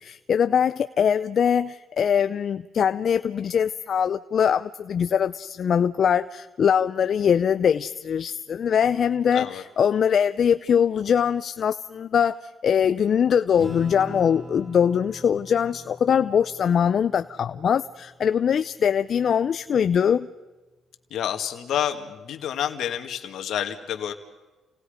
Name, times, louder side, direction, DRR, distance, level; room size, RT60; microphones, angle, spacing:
voice 1, 0.0-20.3, left 8 dB, 55° left, 12 dB, 0.6 m, -22 dB
voice 2, 9.3-9.6 21.1-24.1, left 10 dB, 75° left, 5 dB, 2.0 m, -29 dB
Acoustic guitar / Strum, 13.6-18.4, equal, 5° right, 7.5 m, -41 dB
30.0 x 18.5 x 5.1 m, 1.2 s
cardioid pair, 90°, 0 cm